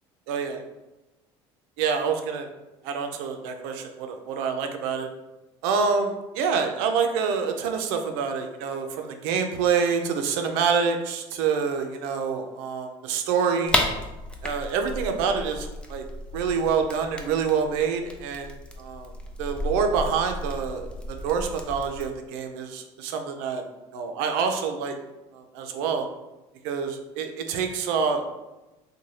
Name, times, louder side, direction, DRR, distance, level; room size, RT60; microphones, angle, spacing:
voice 1, 0.3-0.6 1.8-2.5 2.8-5.1 5.6-13.8 14.4-16.0 16.3-18.5 18.8-19.1 19.4-23.6 23.9-24.9 25.3-26.1 26.6-28.3, right 6 dB, 80° right, 5 dB, 0.4 m, -27 dB
sound 1, 13.6-22.1, left 1 dB, 5° left, 0.4 m, -33 dB
2.7 x 2.1 x 3.1 m, 1.0 s
supercardioid pair, 90°, 14 cm